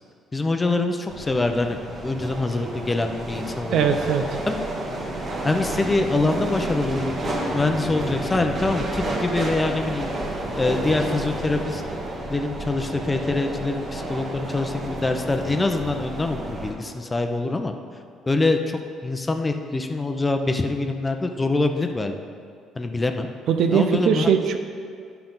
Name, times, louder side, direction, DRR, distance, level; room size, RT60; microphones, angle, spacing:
voice 1, 0.3-4.0 4.5-4.6 5.4-10.1 10.6-11.8 12.3-17.7 18.3-22.1 22.8-23.3 23.7-24.3, left 2 dB, 20° left, 5 dB, 0.7 m, -24 dB
sound 1, 1.1-16.7, right 1 dB, 45° right, 1.5 m, -30 dB
voice 2, 3.7-4.2 23.5-24.6, right 7 dB, 70° right, 6 dB, 0.6 m, -20 dB
10.5 x 5.7 x 3.9 m, 2.2 s
supercardioid pair, 75°, 0 cm